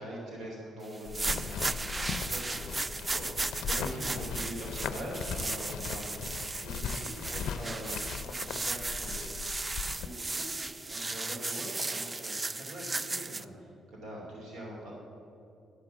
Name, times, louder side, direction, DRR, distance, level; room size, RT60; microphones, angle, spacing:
voice 1, 0.0-9.6 10.0-14.9, right 1 dB, 80° right, -3 dB, 2.7 m, -43 dB
sound 1, 0.9-13.4, right 3 dB, 25° right, 0.3 m, -36 dB
sound 2, 1.1-10.1, left 7 dB, 80° left, 0.5 m, -39 dB
11.5 x 5.9 x 6.9 m, 2.6 s
cardioid pair, 90°, 0 cm